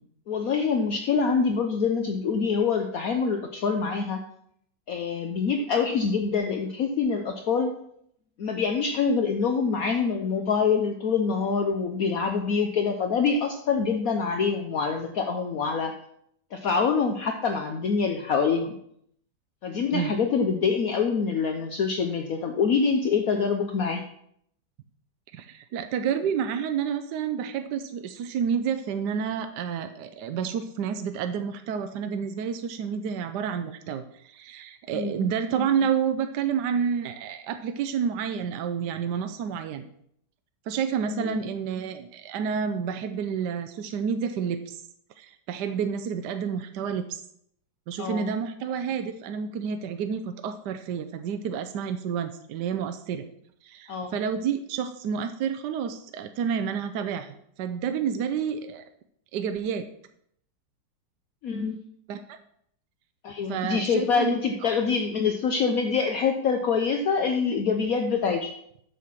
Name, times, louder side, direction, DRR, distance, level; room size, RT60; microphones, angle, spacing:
voice 1, 0.3-4.2 4.9-7.7 8.4-15.9 16.5-18.8 19.6-24.0 34.9-35.3 41.1-41.4 48.0-48.3 53.9-54.1 61.4-61.8 63.2-68.5, left 5 dB, 60° left, 4 dB, 1.1 m, -25 dB
voice 2, 25.3-39.9 40.7-44.8 45.2-47.2 47.9-53.3 53.6-58.8 59.3-59.9 62.1-62.4 63.5-64.7, right 7 dB, 75° right, 8 dB, 1.2 m, -29 dB
8.4 x 6.6 x 5.8 m, 0.69 s
omnidirectional pair, 1.9 m